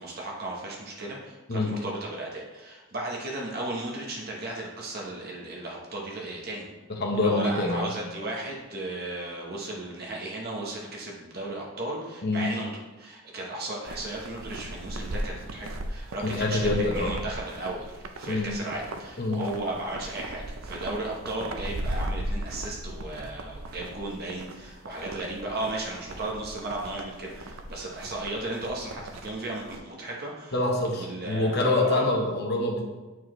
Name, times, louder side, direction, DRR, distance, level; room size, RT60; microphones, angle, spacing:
voice 1, 0.0-6.7 7.2-12.7 13.0-30.5 30.9-32.0, right 2 dB, 45° right, -2 dB, 1.1 m, -35 dB
voice 2, 6.9-7.9 12.2-12.4 16.2-17.2 18.3-18.5 19.2-19.4 30.5-32.8, left 2 dB, 50° left, 1 dB, 1.0 m, -26 dB
sound 1, 13.8-29.8, right 1 dB, 75° right, 0.5 m, -37 dB
8.0 x 4.7 x 3.1 m, 1.1 s
head